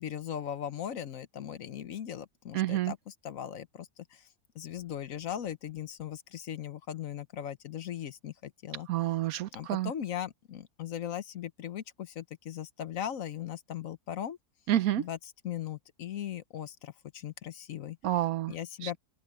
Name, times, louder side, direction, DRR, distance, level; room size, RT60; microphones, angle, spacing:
voice 1, 0.0-4.2 4.5-8.9 9.5-14.4 15.0-15.2 15.4-18.0 18.5-19.0, left 10 dB, 65° left, 1.2 m, -38 dB
voice 2, 2.5-2.9 8.9-9.9 14.7-15.0 18.0-18.5 18.8-18.9, right 13 dB, 75° right, 1.1 m, -28 dB
omnidirectional pair, 1.6 m